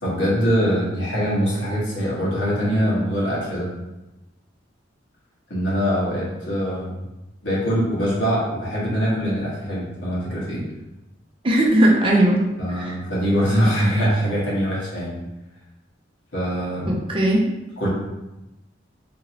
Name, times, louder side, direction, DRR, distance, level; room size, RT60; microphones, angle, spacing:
voice 1, 0.0-3.7 5.5-7.0 7.4-10.6 12.6-15.2 16.3-16.9 17.8-17.9, equal, 70° left, -6 dB, 1.3 m, -23 dB
voice 2, 11.4-12.4 12.7-13.0 16.9-17.5, right 1 dB, 25° right, -2 dB, 0.5 m, -18 dB
4.0 x 2.9 x 2.8 m, 0.99 s
head